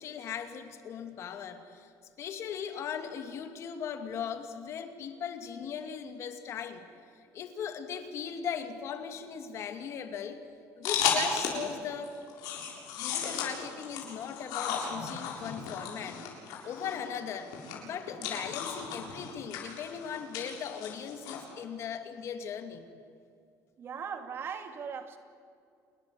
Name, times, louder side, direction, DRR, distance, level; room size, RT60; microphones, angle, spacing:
voice 1, 0.0-1.9 2.2-6.8 7.3-10.4 10.8-12.6 13.0-16.2 16.6-17.5 17.8-22.9, left 7 dB, 45° left, 2.4 m, -38 dB
sound 1, 10.8-11.7 12.0-21.4, left 7 dB, 85° left, 7.2 m, -35 dB
voice 2, 23.8-25.2, right 7 dB, 40° right, 2.5 m, -39 dB
29.0 x 21.5 x 8.3 m
cardioid pair, 150°, 6 cm